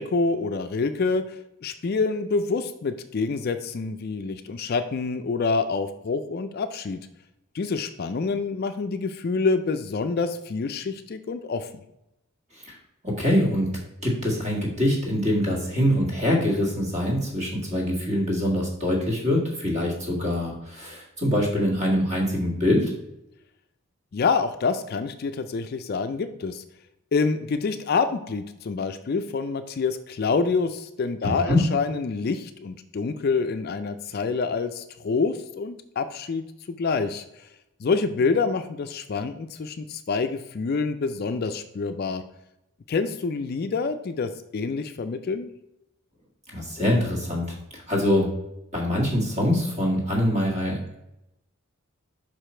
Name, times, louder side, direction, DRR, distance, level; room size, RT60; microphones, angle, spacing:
voice 1, 0.0-1.4 1.6-7.0 7.5-11.7 24.1-26.6 27.1-37.5 37.8-42.2 42.9-45.5, left 4 dB, 45° left, 9 dB, 0.3 m, -27 dB
voice 2, 13.0-22.9 31.2-31.6 46.5-48.3 48.7-51.0, left 1 dB, 30° right, -2 dB, 1.7 m, -24 dB
5.6 x 5.0 x 4.3 m, 0.88 s
head